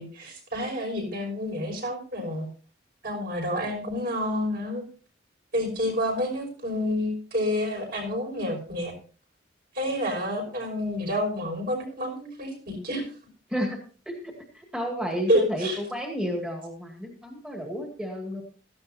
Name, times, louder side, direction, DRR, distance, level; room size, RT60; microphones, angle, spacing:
voice 1, 0.0-2.5 3.0-4.8 5.5-8.9 9.7-13.1 15.3-15.8, left 1 dB, 50° right, 2 dB, 5.8 m, -29 dB
voice 2, 14.1-18.4, equal, 5° right, 1 dB, 2.1 m, -31 dB
17.0 x 14.5 x 2.7 m, 0.38 s
head